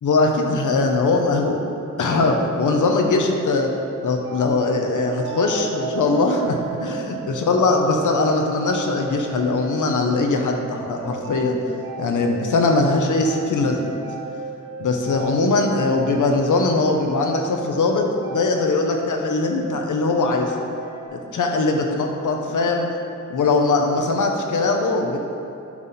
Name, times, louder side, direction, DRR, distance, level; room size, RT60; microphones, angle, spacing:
voice 1, 0.0-1.6 2.0-3.7 4.0-11.6 12.0-13.9 14.8-20.7 21.1-22.9 23.3-25.2, left 3 dB, 80° left, 2 dB, 0.9 m, -21 dB
sound 1, 2.2-21.1, right 4 dB, 45° right, 1.0 m, -36 dB
sound 2, 4.0-9.7, right 8 dB, 90° right, 0.5 m, -34 dB
9.3 x 5.6 x 4.2 m, 2.7 s
wide cardioid pair, 150°, 30 cm